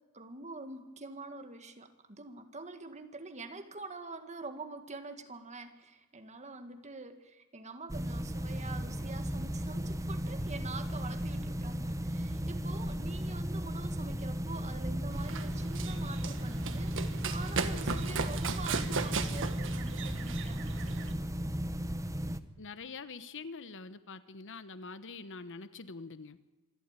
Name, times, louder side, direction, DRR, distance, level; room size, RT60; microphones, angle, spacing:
voice 1, 0.1-21.3, right 3 dB, 30° right, 7 dB, 1.9 m, -46 dB
sound 1, 7.9-22.4, equal, 15° right, 0.8 m, -35 dB
Run, 15.1-21.1, right 4 dB, 60° right, 1.5 m, -36 dB
voice 2, 22.6-26.4, left 4 dB, 60° left, 13 dB, 1.0 m, -45 dB
26.0 x 12.0 x 9.0 m, 1.2 s
head